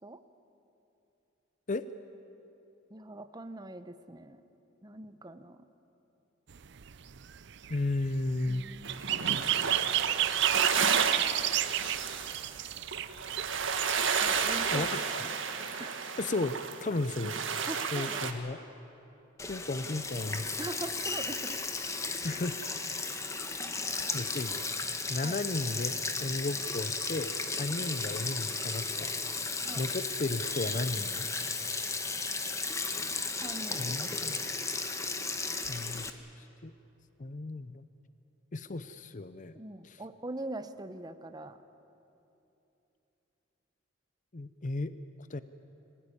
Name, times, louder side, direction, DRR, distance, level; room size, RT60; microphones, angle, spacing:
voice 1, 2.9-4.4 4.8-5.6 8.4-9.0 14.2-14.9 15.1-15.3 15.8-16.0 17.7-18.2 20.6-21.6 25.2-25.4 27.8-27.9 29.7-29.8 33.4-34.0 39.5-41.6, right 1 dB, 20° right, 9 dB, 0.9 m, -42 dB
sound 1, 6.5-14.9, right 13 dB, 65° right, 0.6 m, -32 dB
voice 2, 7.7-8.6 14.7-14.9 15.1-15.2 16.2-17.4 17.9-18.6 19.5-20.5 22.2-23.1 24.1-24.6 25.1-25.9 26.2-29.1 29.8-31.3 33.8-34.4 35.7-36.1 36.4-36.7 37.2-37.8 38.5-39.6 39.8-40.0 44.3-44.9 45.3-45.4, left 2 dB, 40° left, 12 dB, 0.6 m, -34 dB
sound 2, 8.8-18.3, right 6 dB, 90° right, 1.7 m, -32 dB
Sink (filling or washing), 19.4-36.1, left 3 dB, 15° left, 1.1 m, -35 dB
25.5 x 17.5 x 9.9 m, 2.9 s
head